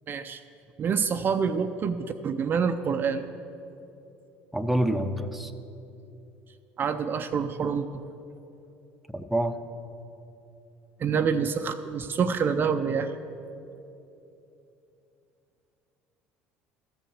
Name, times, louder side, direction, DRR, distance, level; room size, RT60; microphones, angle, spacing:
voice 1, 0.1-0.4 0.8-3.3 6.8-8.0 11.0-13.1, right 6 dB, 40° right, 8 dB, 0.5 m, -27 dB
voice 2, 4.5-5.5 9.1-9.6, right 1 dB, ahead, 7 dB, 0.7 m, -27 dB
14.0 x 5.6 x 7.4 m, 2.9 s
hypercardioid pair, 75°, 5 cm